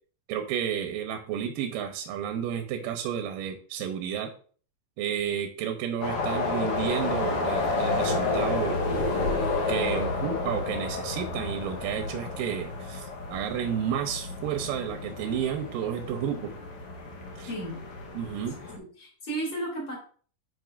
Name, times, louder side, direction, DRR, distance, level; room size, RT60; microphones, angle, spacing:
voice 1, 0.3-4.3 5.0-8.8 9.7-16.6 17.4-17.5 18.1-18.6, right 8 dB, 80° right, 5 dB, 2.3 m, -31 dB
sound 1, 6.0-18.8, left 3 dB, 75° left, 1.3 m, -30 dB
voice 2, 17.5-17.8 18.6-20.0, right 1 dB, 30° left, -2 dB, 3.3 m, -34 dB
9.1 x 5.5 x 2.4 m, 0.43 s
omnidirectional pair, 4.2 m